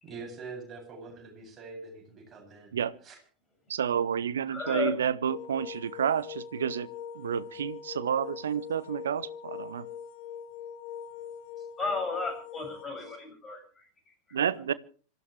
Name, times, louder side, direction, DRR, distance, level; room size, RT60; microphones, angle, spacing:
voice 1, 0.0-2.7 3.0-3.2 11.6-11.7, right 4 dB, 20° right, 8.0 m, -44 dB
voice 2, 3.7-6.9 7.1-9.9 14.3-14.7, right 8 dB, 65° right, 0.9 m, -30 dB
voice 3, 4.5-4.9 11.8-13.9 14.3-14.4, left 4 dB, 20° left, 7.3 m, -34 dB
sound 1, 5.3-12.9, left 8 dB, 50° left, 3.4 m, -42 dB
26.5 x 15.0 x 3.4 m
figure-of-eight pair, 90°, 0 cm